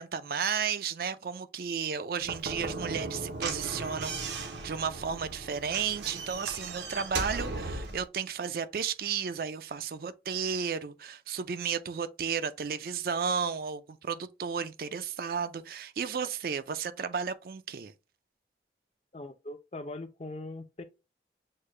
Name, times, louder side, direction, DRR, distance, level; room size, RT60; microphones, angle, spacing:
voice 1, 0.0-17.9, right 6 dB, 55° right, 0.4 m, -33 dB
Slam / Knock, 2.2-8.0, right 3 dB, 85° right, 0.8 m, -37 dB
voice 2, 19.1-20.8, left 2 dB, 35° left, 0.5 m, -41 dB
6.5 x 2.2 x 3.2 m
head